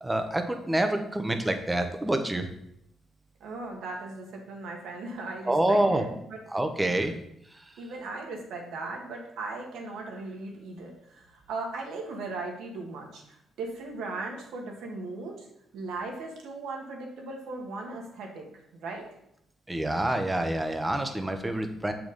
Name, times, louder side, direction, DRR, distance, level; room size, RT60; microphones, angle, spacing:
voice 1, 0.0-2.5 5.5-6.0 6.5-7.2 7.6-7.7 19.7-21.9, right 1 dB, 10° right, 6 dB, 0.9 m, -27 dB
voice 2, 3.4-6.4 6.9-7.0 7.8-15.5 15.7-19.1, right 3 dB, 80° right, 1 dB, 1.6 m, -38 dB
7.0 x 5.1 x 4.0 m, 0.76 s
cardioid pair, 90°, 0 cm